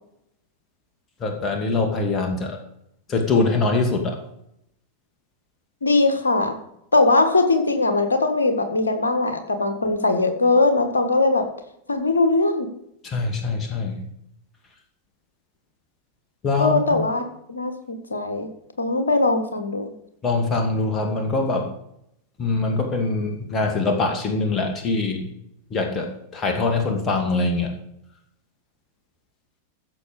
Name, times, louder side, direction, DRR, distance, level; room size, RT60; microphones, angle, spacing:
voice 1, 1.2-2.6 3.1-4.2 13.0-14.0 16.4-16.8 20.2-21.7 22.4-25.3 25.7-27.7, left 3 dB, 25° left, 3 dB, 2.3 m, -23 dB
voice 2, 5.8-6.6 6.9-11.5 11.9-12.7 16.6-17.2 17.5-18.5 18.8-19.9, left 3 dB, 75° left, 7 dB, 1.7 m, -20 dB
15.0 x 7.0 x 5.3 m, 0.77 s
figure-of-eight pair, 90°, 0 cm